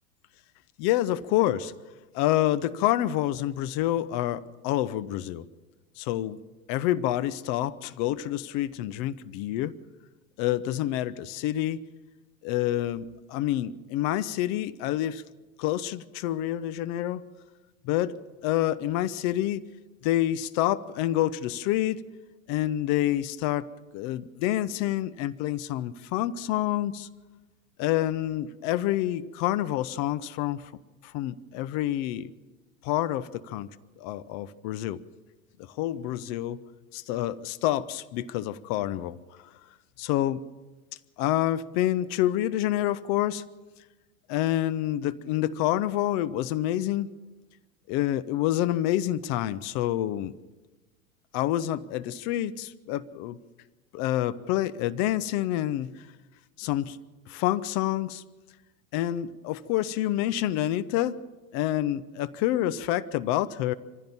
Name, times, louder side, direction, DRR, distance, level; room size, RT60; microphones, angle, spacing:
voice 1, 0.8-1.7 2.1-5.5 6.0-6.4 6.7-9.7 10.4-11.8 12.4-15.2 15.6-17.2 17.8-18.1 18.4-19.6 20.0-22.0 22.5-23.7 23.9-27.1 27.8-30.7 31.0-32.3 32.8-33.7 34.0-35.0 35.6-36.6 36.9-39.2 40.0-40.4 41.2-43.4 44.3-47.1 47.9-50.3 51.3-53.4 53.9-56.1 56.6-57.0 57.3-58.2 58.9-61.2 61.5-63.7, left 13 dB, 40° left, 16 dB, 0.8 m, -27 dB
24.0 x 15.5 x 7.2 m, 1.2 s
figure-of-eight pair, 90°, 41 cm